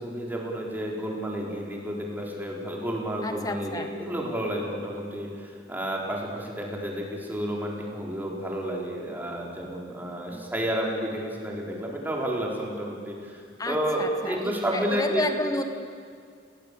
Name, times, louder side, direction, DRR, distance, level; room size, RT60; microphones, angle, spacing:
voice 1, 0.0-13.4 13.7-15.2, equal, 10° right, -2 dB, 4.5 m, -31 dB
voice 2, 3.2-3.9 10.3-10.5 13.6-15.6, left 1 dB, 20° left, 6 dB, 1.9 m, -31 dB
29.5 x 18.5 x 8.5 m, 2.1 s
head